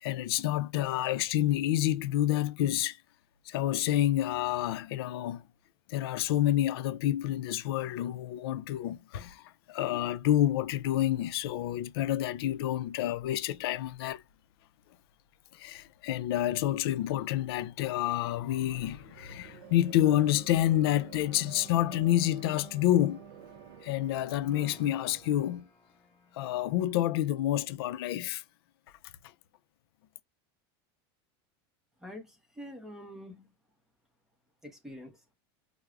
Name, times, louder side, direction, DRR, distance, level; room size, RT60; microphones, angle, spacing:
voice 1, 0.0-3.0 3.5-5.4 5.9-14.2 15.5-23.2 23.8-25.7 26.3-28.4, left 13 dB, 80° left, 0.4 m, -28 dB
sound 1, 18.2-25.6, right 11 dB, 60° right, 0.5 m, -51 dB
sound 2, 21.1-27.1, left 3 dB, 15° left, 1.7 m, -58 dB
voice 2, 32.0-33.5 34.6-35.2, left 1 dB, 5° right, 0.7 m, -46 dB
4.5 x 2.0 x 2.4 m
supercardioid pair, 170°, 13 cm